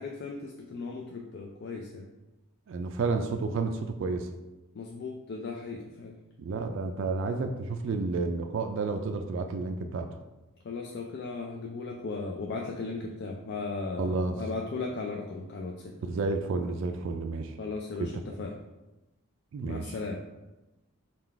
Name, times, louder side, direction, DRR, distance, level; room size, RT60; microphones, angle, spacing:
voice 1, 0.0-2.1 4.8-6.1 10.6-16.0 17.6-18.5 19.6-20.2, left 3 dB, 50° left, 0 dB, 0.4 m, -36 dB
voice 2, 2.7-4.3 6.4-10.1 14.0-14.4 16.0-17.6 18.0-18.4 19.5-20.0, right 3 dB, 60° right, 6 dB, 0.3 m, -31 dB
3.8 x 2.3 x 4.5 m, 1.0 s
head